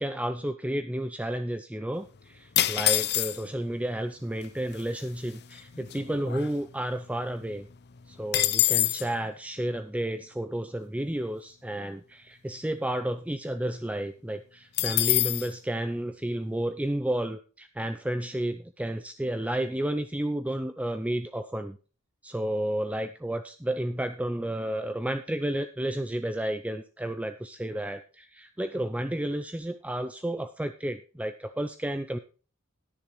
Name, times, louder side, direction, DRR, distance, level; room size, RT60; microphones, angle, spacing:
voice 1, 0.0-7.7 8.1-21.8 22.2-32.2, right 1 dB, 5° right, 9 dB, 0.5 m, -31 dB
sound 1, 2.6-3.6 4.4-4.5 4.7-5.1 5.5-7.0 7.3-7.4 7.7-9.1 14.8-15.5, left 14 dB, 50° left, 0.6 m, -26 dB
20.5 x 7.0 x 3.1 m, 0.36 s
head